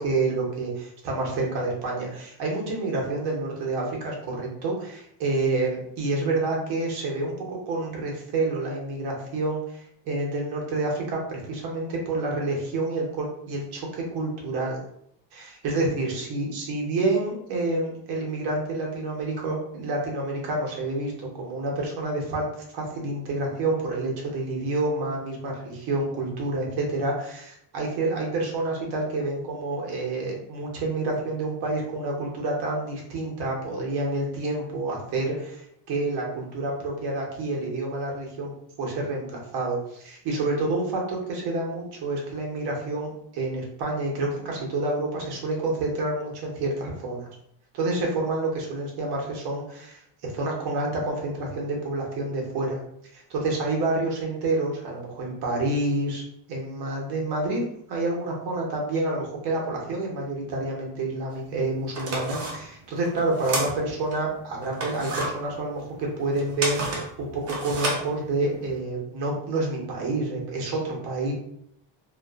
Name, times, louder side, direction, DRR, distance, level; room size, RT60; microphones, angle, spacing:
voice 1, 0.0-9.8 10.0-14.8 15.3-22.4 22.7-38.5 38.8-47.3 47.7-52.8 53.1-56.2 56.5-57.6 57.9-71.3, right 2 dB, 50° right, -1 dB, 0.9 m, -28 dB
sound 1, 61.3-61.4 61.8-64.2 64.6-68.7, right 2 dB, 30° right, 0.6 m, -31 dB
2.4 x 2.4 x 2.3 m, 0.73 s
cardioid pair, 155°, 49 cm